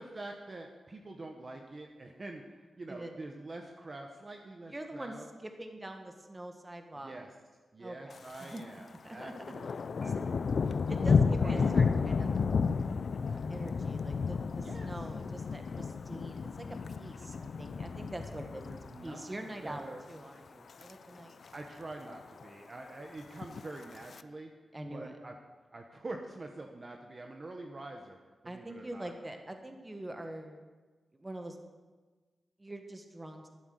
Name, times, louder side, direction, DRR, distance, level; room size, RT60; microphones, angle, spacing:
voice 1, 0.0-5.3 6.9-7.3 7.7-9.7 10.0-10.9 11.4-11.7 14.6-14.9 18.6-20.0 21.5-24.5 24.8-25.3 25.7-28.2 28.4-29.1, right 2 dB, 35° right, 2 dB, 1.2 m, -46 dB
voice 2, 4.7-5.1 5.4-7.2 7.8-9.5 10.1-10.2 10.6-12.4 13.3-16.6 17.0-18.6 19.0-21.4 24.7-25.2 28.4-30.6 31.1-31.6 32.6-33.4, right 1 dB, 20° right, 5 dB, 1.6 m, -44 dB
Thunder, 8.1-8.6 8.9-19.3 19.7-20.0 20.5-20.9 21.2-21.3 21.4-21.5 21.9-22.5 23.3-24.2, left 5 dB, 60° left, 0.5 m, -32 dB
12.5 x 12.0 x 6.6 m, 1.3 s
wide cardioid pair, 130°, 0 cm